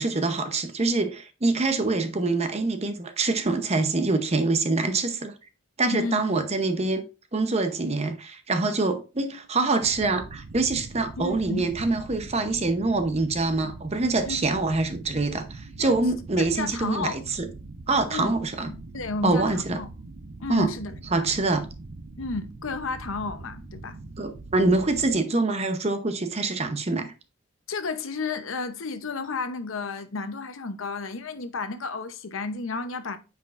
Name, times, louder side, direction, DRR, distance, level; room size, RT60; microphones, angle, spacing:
voice 1, 0.0-5.3 5.8-7.0 7.3-17.5 17.9-18.7 19.2-19.8 20.5-20.7 21.1-21.7 24.2-27.1, right 3 dB, 30° right, 0.7 m, -25 dB
voice 2, 5.9-6.2 11.2-11.7 14.3-14.4 15.8-16.0 16.4-17.2 18.1-18.3 18.7-19.9 20.4-21.2 22.2-24.0 27.7-33.2, left 4 dB, 70° left, 0.8 m, -32 dB
sound 1, 9.8-25.2, right 2 dB, 60° right, 0.7 m, -42 dB
8.9 x 5.0 x 2.5 m
head